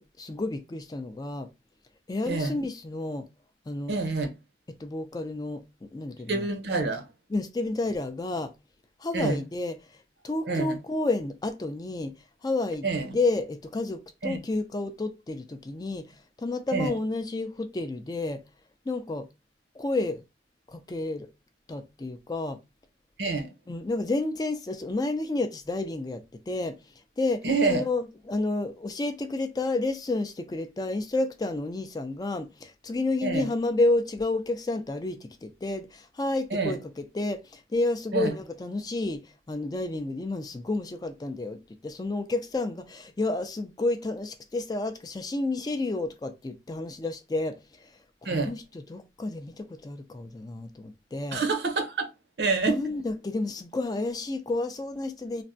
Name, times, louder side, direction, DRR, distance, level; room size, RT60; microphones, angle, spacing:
voice 1, 0.0-1.5 2.1-3.3 3.7-4.0 4.8-6.5 7.3-8.5 9.0-9.8 10.2-12.1 12.4-12.9 13.1-18.4 18.9-19.3 19.7-20.2 20.7-21.3 21.7-22.6 23.7-26.8 27.2-47.9 48.2-48.6 48.9-51.4 52.7-55.4, left 2 dB, 20° left, 0.3 m, -30 dB
voice 2, 3.9-4.3 6.3-7.1 9.1-9.4 10.5-10.8 12.8-13.1 14.2-14.4 16.7-17.0 23.2-23.5 27.4-27.8 33.2-33.5 36.5-36.8 38.1-38.3 48.2-48.5 51.3-52.1 52.4-52.8, right 3 dB, 75° right, 0.7 m, -27 dB
3.3 x 2.1 x 2.6 m
head